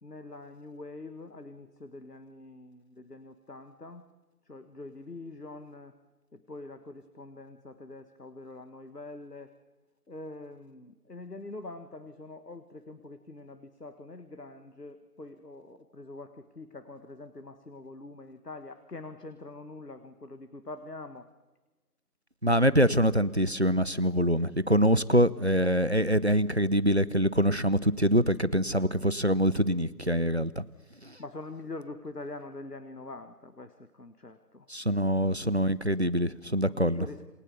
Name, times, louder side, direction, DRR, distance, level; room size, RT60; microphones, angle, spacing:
voice 1, 0.0-4.0 4.4-6.0 6.3-9.5 10.1-21.3 31.2-35.5 36.7-37.3, left 2 dB, 75° left, 9 dB, 1.7 m, -44 dB
voice 2, 22.4-30.6 31.0-31.2 34.7-37.1, equal, 45° right, 19 dB, 0.7 m, -25 dB
28.0 x 20.0 x 7.0 m, 1.1 s
figure-of-eight pair, 170°, 47 cm